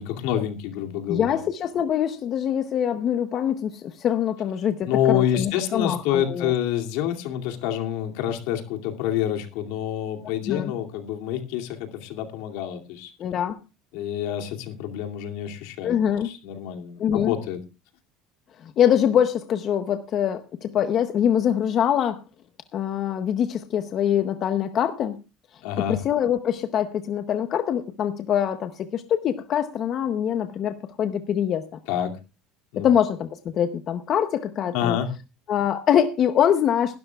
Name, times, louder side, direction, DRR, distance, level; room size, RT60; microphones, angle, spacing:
voice 1, 0.0-1.4 4.9-13.1 13.9-15.9 16.2-17.6 25.6-26.0 31.9-32.1 32.7-32.9 34.7-35.1, left 10 dB, 75° left, 3 dB, 2.5 m, -27 dB
voice 2, 1.1-6.5 10.5-10.7 13.2-13.6 15.8-16.3 17.0-17.3 18.6-22.2 22.7-25.2 25.9-31.7 32.8-35.0 35.5-37.0, left 9 dB, 35° left, 9 dB, 0.7 m, -24 dB
21.5 x 12.0 x 2.3 m, 0.28 s
cardioid pair, 165°, 0 cm